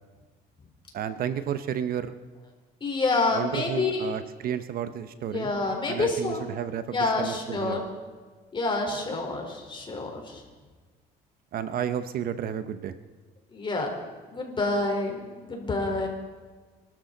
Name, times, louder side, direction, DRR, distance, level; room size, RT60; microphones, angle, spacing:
voice 1, 0.9-2.1 3.3-5.5 5.9-7.8 11.5-13.0, right 9 dB, 60° right, 11 dB, 0.9 m, -32 dB
voice 2, 2.8-4.1 5.3-6.5 6.9-7.9 8.5-10.4 13.5-13.9 14.3-15.2 15.5-16.1, left 3 dB, 30° left, 1 dB, 4.1 m, -27 dB
26.0 x 12.5 x 4.0 m, 1.4 s
cardioid pair, 110°, 17 cm